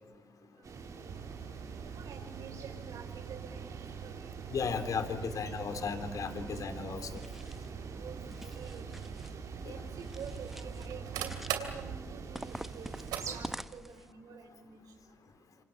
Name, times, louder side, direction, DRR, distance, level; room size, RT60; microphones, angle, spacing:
sound 1, 0.6-13.5, right 4 dB, 55° right, 3.9 m, -45 dB
voice 1, 0.9-1.4 1.7-3.8 4.0-4.4 8.0-8.9 9.6-14.8, right 6 dB, 70° right, 5 dB, 4.9 m, -48 dB
sound 2, 1.1-13.2, right 9 dB, 90° right, 2.7 m, -44 dB
voice 2, 4.5-7.2 9.6-9.8, left 5 dB, 60° left, 9 dB, 3.4 m, -35 dB
sound 3, 7.0-7.7 8.2-9.3 10.0-10.9 11.2-11.8 12.3-14.1, equal, 5° right, 1.0 m, -47 dB
27.5 x 25.5 x 7.2 m, 1.4 s
supercardioid pair, 60°, 7 cm